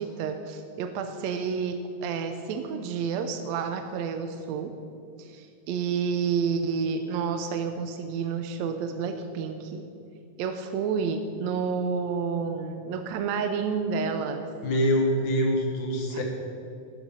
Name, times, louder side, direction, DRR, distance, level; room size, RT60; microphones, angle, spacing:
voice 1, 0.0-4.8 5.2-9.9 10.4-14.5 16.1-16.2, right 6 dB, 75° right, 7 dB, 1.8 m, -30 dB
voice 2, 14.6-16.2, equal, 75° left, 1 dB, 3.1 m, -24 dB
12.0 x 10.5 x 5.3 m, 2.5 s
omnidirectional pair, 3.5 m